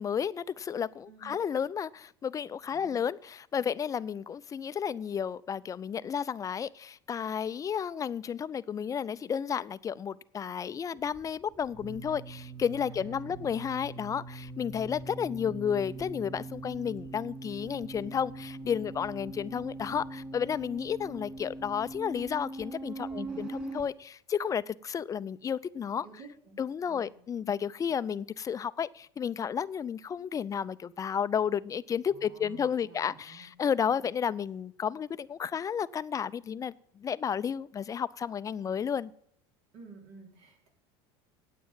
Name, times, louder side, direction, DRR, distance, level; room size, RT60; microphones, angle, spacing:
voice 1, 0.0-26.1 26.6-39.1, left 7 dB, 25° left, 0.5 m, -32 dB
voice 2, 1.1-1.4 2.7-3.0 12.9-13.6 23.1-23.5 26.0-26.6 26.9-27.1 32.1-33.5 39.7-40.7, right 4 dB, 60° right, 4.4 m, -52 dB
sound 1, 11.0-23.8, right 3 dB, 10° right, 3.0 m, -42 dB
9.5 x 8.4 x 7.5 m
supercardioid pair, 100°, 13 cm